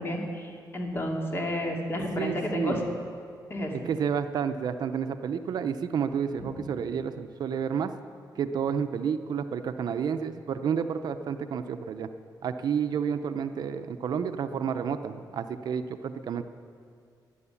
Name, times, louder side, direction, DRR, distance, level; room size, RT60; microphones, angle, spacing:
voice 1, 0.0-2.8 3.5-3.7 6.4-6.7, left 1 dB, 30° left, 0 dB, 2.6 m, -31 dB
voice 2, 2.2-2.8 3.7-7.9 8.4-12.1 12.4-16.4, right 7 dB, 65° right, 9 dB, 0.7 m, -30 dB
13.0 x 11.0 x 9.8 m, 2.4 s
wide cardioid pair, 145°, 8 cm